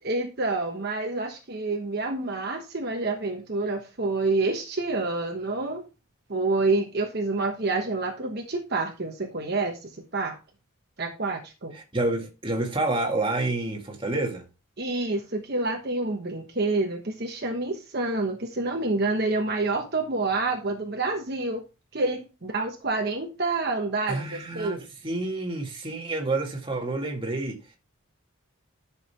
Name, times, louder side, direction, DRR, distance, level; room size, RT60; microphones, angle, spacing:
voice 1, 0.0-5.8 6.3-10.4 11.0-11.7 14.8-21.6 21.9-24.8, right 3 dB, 50° right, 1.1 m, -28 dB
voice 2, 11.7-14.4 24.1-27.8, right 2 dB, 25° right, 1.9 m, -29 dB
10.5 x 6.4 x 3.3 m
head